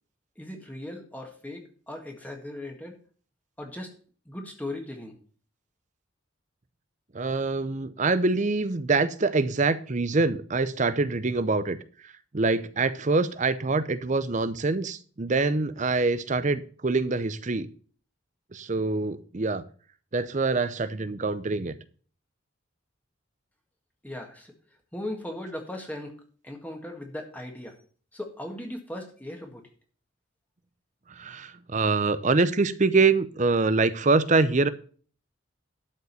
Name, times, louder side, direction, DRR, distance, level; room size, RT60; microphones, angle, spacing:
voice 1, 0.4-3.0 3.6-3.9 4.3-5.1 24.0-24.5 24.9-26.2 26.4-27.8 28.1-29.6, left 1 dB, 10° left, 2 dB, 1.8 m, -38 dB
voice 2, 7.1-11.8 12.3-17.7 18.5-19.6 20.1-21.7 31.2-34.7, right 3 dB, 35° right, 14 dB, 0.6 m, -25 dB
12.0 x 5.3 x 6.8 m, 0.42 s
head